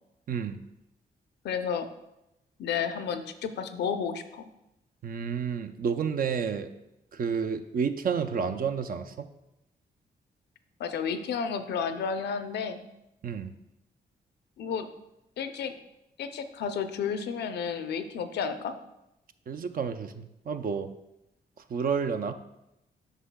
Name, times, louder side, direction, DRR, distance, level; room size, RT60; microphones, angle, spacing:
voice 1, 0.3-0.6 5.0-6.7 7.1-9.3 13.2-13.5 19.5-20.9 21.7-22.3, right 6 dB, 55° right, 9 dB, 0.5 m, -30 dB
voice 2, 1.4-1.9 2.6-4.5 10.8-12.8 14.6-14.9 15.4-15.7 16.2-18.7, left 6 dB, 75° left, 9 dB, 0.5 m, -31 dB
8.1 x 5.4 x 2.2 m, 0.89 s
supercardioid pair, 55°, 18 cm